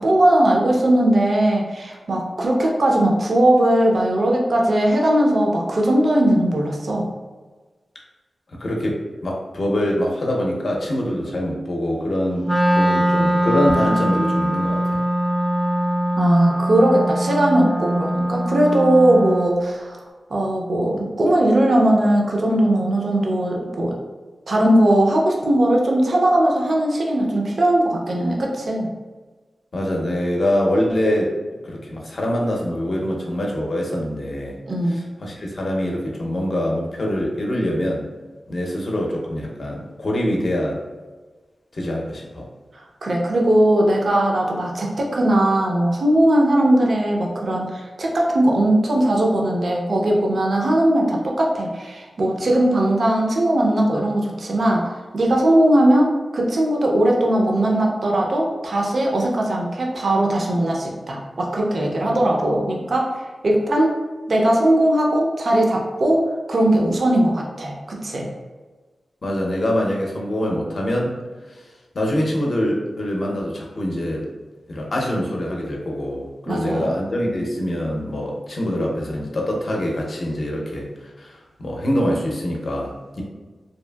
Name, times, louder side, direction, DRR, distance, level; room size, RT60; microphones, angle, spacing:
voice 1, 0.0-7.1 16.2-20.0 20.3-23.9 24.5-28.9 34.7-35.1 43.0-54.9 55.1-63.1 63.4-64.0 64.3-68.3 76.5-76.9, right 1 dB, 60° right, -1 dB, 0.5 m, -19 dB
voice 2, 8.5-15.0 29.7-31.3 31.6-34.6 34.9-38.1 38.5-40.8 41.7-42.5 69.2-71.1 71.5-71.6 71.9-74.3 74.7-83.2, left 1 dB, 55° left, -1 dB, 0.5 m, -24 dB
Wind instrument woodwind instrument, 12.4-19.6, equal, ahead, 0.4 m, -21 dB
2.7 x 2.5 x 2.2 m, 1.3 s
wide cardioid pair, 75°, 0 cm